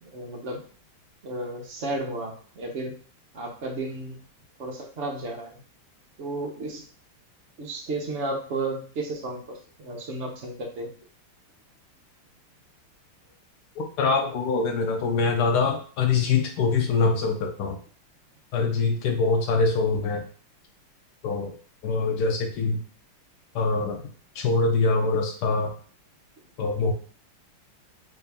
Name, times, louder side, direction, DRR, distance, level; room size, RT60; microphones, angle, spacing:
voice 1, 0.0-0.6 1.2-2.9 3.3-4.2 4.6-5.6 6.2-6.8 7.6-10.9, right 2 dB, 60° right, 0 dB, 0.7 m, -33 dB
voice 2, 13.8-17.8 18.5-20.2 21.2-21.5 21.8-22.8 23.5-24.0 24.3-25.7 26.6-26.9, left 4 dB, 85° left, 2 dB, 0.9 m, -24 dB
3.7 x 2.8 x 3.4 m, 0.43 s
omnidirectional pair, 2.4 m